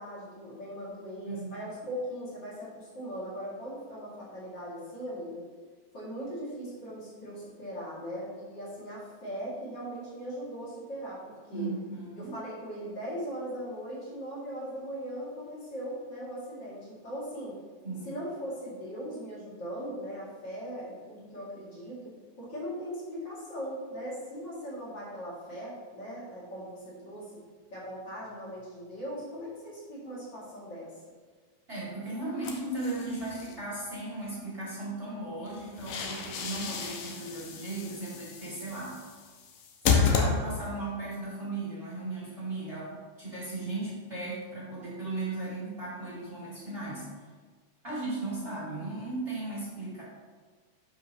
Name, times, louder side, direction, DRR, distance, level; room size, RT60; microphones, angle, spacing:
voice 1, 0.0-5.5 5.9-11.7 12.1-17.6 18.0-22.0 22.4-27.4 27.7-30.9, equal, 40° left, -7 dB, 1.8 m, -39 dB
voice 2, 1.2-1.7 11.5-12.3 17.8-18.2 31.7-39.0 39.8-47.1 47.8-50.0, right 2 dB, 20° right, -7 dB, 1.7 m, -36 dB
sound 1, 32.4-33.5 35.5-40.9, left 5 dB, 80° left, 1.9 m, -31 dB
12.0 x 5.5 x 2.9 m, 1.5 s
omnidirectional pair, 4.9 m